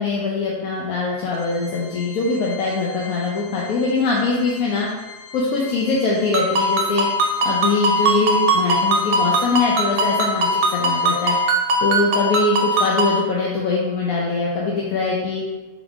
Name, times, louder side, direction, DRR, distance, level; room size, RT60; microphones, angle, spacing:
voice 1, 0.0-4.9 5.3-7.1 7.4-11.3 11.8-15.4, left 3 dB, 70° left, -3 dB, 1.0 m, -22 dB
Organ, 1.3-11.9, left 3 dB, 85° left, 1.3 m, -42 dB
Ringtone, 6.3-13.2, right 1 dB, 75° right, 1.0 m, -20 dB
3.7 x 2.9 x 3.5 m, 1.2 s
omnidirectional pair, 1.7 m